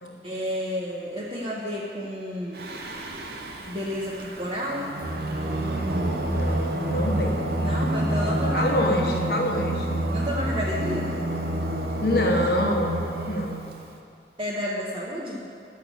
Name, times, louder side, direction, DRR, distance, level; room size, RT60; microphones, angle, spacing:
voice 1, 0.2-2.7 3.7-4.9 7.6-8.7 9.1-9.3 10.1-11.1 14.4-15.4, equal, 30° right, -6 dB, 1.1 m, -30 dB
Singing, 2.5-13.9, right 1 dB, 55° right, 0.9 m, -28 dB
voice 2, 6.2-7.5 8.5-9.9 12.0-13.0 13.3-13.7, left 1 dB, 55° left, 1 dB, 1.3 m, -26 dB
10.5 x 6.2 x 8.1 m, 2.4 s
head